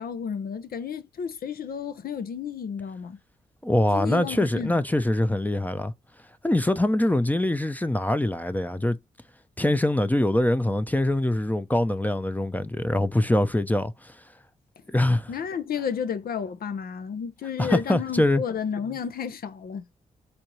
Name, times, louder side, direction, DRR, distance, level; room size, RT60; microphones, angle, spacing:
voice 1, 0.0-3.2 3.9-4.8 15.3-19.9, left 7 dB, 70° left, 0.9 m, -32 dB
voice 2, 3.6-5.9 6.4-9.0 9.6-14.1 14.9-15.3 17.6-18.4, left 1 dB, 10° left, 0.6 m, -23 dB
4.4 x 2.5 x 3.1 m
supercardioid pair, 55°, 16 cm